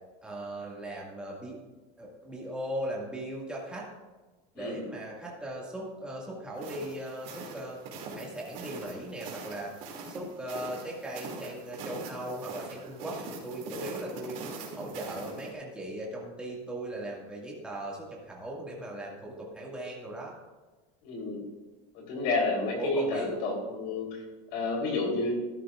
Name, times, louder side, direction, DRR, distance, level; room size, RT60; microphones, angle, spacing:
voice 1, 0.2-1.6 2.0-3.8 4.6-7.8 8.1-14.4 14.8-20.3 22.8-23.3, right 1 dB, 5° right, -4 dB, 2.2 m, -38 dB
sound 1, 6.6-15.5, right 4 dB, 55° right, 2.7 m, -42 dB
voice 2, 21.0-21.4 21.9-24.2 24.5-25.4, left 2 dB, 65° left, 0 dB, 3.9 m, -30 dB
13.5 x 11.5 x 2.6 m, 1.2 s
cardioid pair, 155°, 18 cm